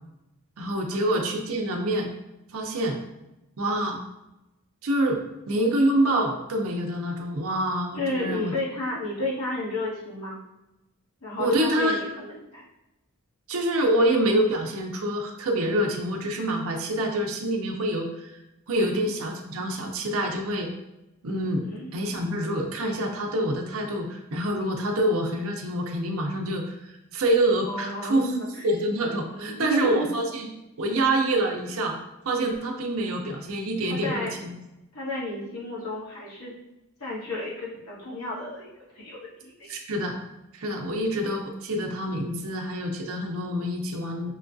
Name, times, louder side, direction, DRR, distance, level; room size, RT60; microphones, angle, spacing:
voice 1, 0.6-2.1 2.5-3.0 3.6-4.0 4.8-8.5 11.4-12.0 13.5-18.4 18.7-20.7 21.2-21.6 21.9-28.3 28.6-30.5 30.8-32.0 32.2-34.5 39.7-40.2 40.5-44.3, right 1 dB, 70° right, 2 dB, 0.6 m, -26 dB
voice 2, 7.9-10.4 11.2-12.6 18.7-19.1 21.6-21.9 27.7-28.7 29.3-30.0 33.9-34.3 34.9-36.5 37.0-38.7 38.9-39.7, left 1 dB, 85° left, -7 dB, 1.4 m, -32 dB
5.4 x 2.3 x 2.6 m, 0.96 s
head